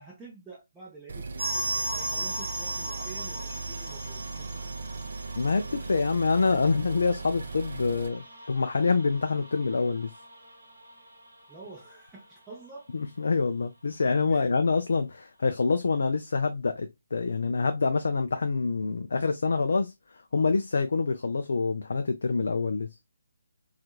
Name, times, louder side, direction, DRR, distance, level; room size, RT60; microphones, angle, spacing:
voice 1, 0.0-4.6 11.5-12.9 14.3-14.5, right 3 dB, 10° right, 0.6 m, -48 dB
sound 1, 1.1-8.1, right 4 dB, 55° right, 0.4 m, -38 dB
sound 2, 1.4-11.9 12.2-12.3 12.5-12.6 13.2-13.3, right 1 dB, 70° right, 0.9 m, -38 dB
voice 2, 5.4-10.1 12.9-23.0, left 4 dB, 60° left, 0.3 m, -26 dB
2.7 x 2.4 x 2.2 m
figure-of-eight pair, 140°, 0 cm